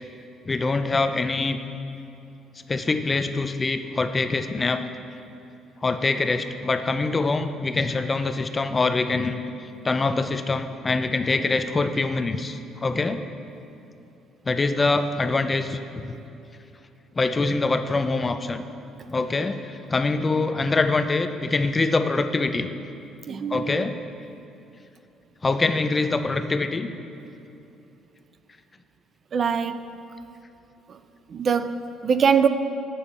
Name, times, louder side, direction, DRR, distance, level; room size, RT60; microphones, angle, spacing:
voice 1, 0.5-1.6 2.7-4.9 5.8-9.4 9.8-13.2 14.5-16.0 17.2-18.7 19.1-22.7 23.5-24.0 25.4-26.9, left 3 dB, 25° left, 9 dB, 0.4 m, -24 dB
voice 2, 23.3-23.8 29.3-30.1 30.9-31.0 31.3-32.5, right 6 dB, 45° right, 11 dB, 0.3 m, -23 dB
8.7 x 6.9 x 4.2 m, 2.8 s
cardioid pair, 115°, 0 cm